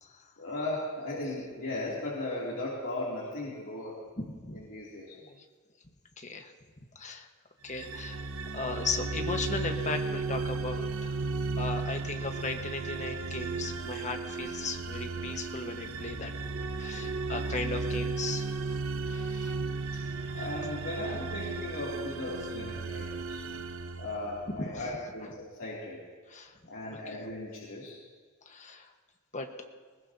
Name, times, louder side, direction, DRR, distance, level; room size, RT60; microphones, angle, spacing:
voice 1, 0.4-4.0 4.5-5.2 20.3-23.4 24.0-26.0 26.7-28.0, left 2 dB, 80° left, -7 dB, 2.9 m, -37 dB
voice 2, 4.2-4.6 5.2-5.4 6.2-6.5 6.9-7.3 7.6-8.2 8.5-11.2 11.6-16.3 16.8-18.8 19.0-19.6 19.9-20.5 24.6-24.8 25.2-25.3 26.3-26.5 26.9-27.0 28.5-28.9 29.3-29.5, left 3 dB, 35° left, 4 dB, 1.3 m, -37 dB
sound 1, 7.7-24.8, right 3 dB, 70° right, 0.8 m, -35 dB
21.0 x 19.5 x 2.8 m, 1.5 s
head